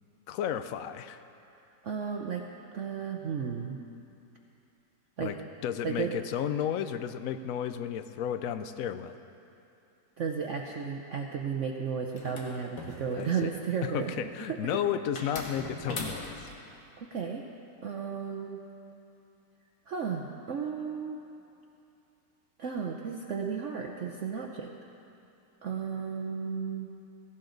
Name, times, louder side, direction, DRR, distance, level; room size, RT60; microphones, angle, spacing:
voice 1, 0.3-1.2 5.2-5.4 5.6-9.2 13.2-13.5 13.8-16.5, left 9 dB, 65° left, 10 dB, 0.9 m, -33 dB
voice 2, 1.8-2.4 2.7-3.8 5.2-5.3 5.8-6.1 10.2-14.1 14.5-14.6 17.0-17.4 17.8-18.6 19.9-21.2 22.6-24.7 25.6-26.9, right 6 dB, 55° right, 1 dB, 1.0 m, -33 dB
sound 1, 12.1-13.6 15.2-16.6, left 2 dB, 85° left, 2.2 m, -39 dB
16.5 x 16.5 x 3.9 m, 2.8 s
omnidirectional pair, 1.8 m